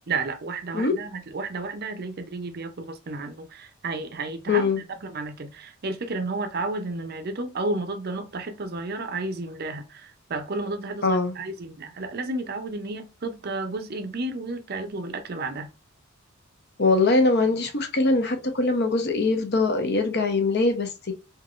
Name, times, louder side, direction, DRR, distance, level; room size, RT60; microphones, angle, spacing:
voice 1, 0.1-15.7, right 3 dB, 45° right, 0.6 m, -32 dB
voice 2, 4.5-4.8 11.0-11.3 16.8-21.1, left 3 dB, 50° left, 0.8 m, -22 dB
3.6 x 2.8 x 2.4 m
head